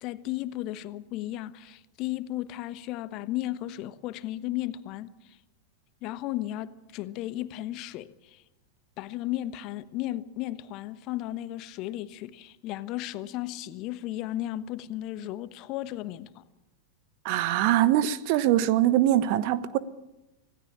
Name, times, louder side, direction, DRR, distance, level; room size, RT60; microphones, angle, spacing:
voice 1, 0.0-5.1 6.0-8.4 9.0-16.4, left 14 dB, 40° left, 1.1 m, -34 dB
voice 2, 17.2-19.8, right 13 dB, 45° right, 1.1 m, -23 dB
26.0 x 17.5 x 8.7 m
figure-of-eight pair, 90°, 0 cm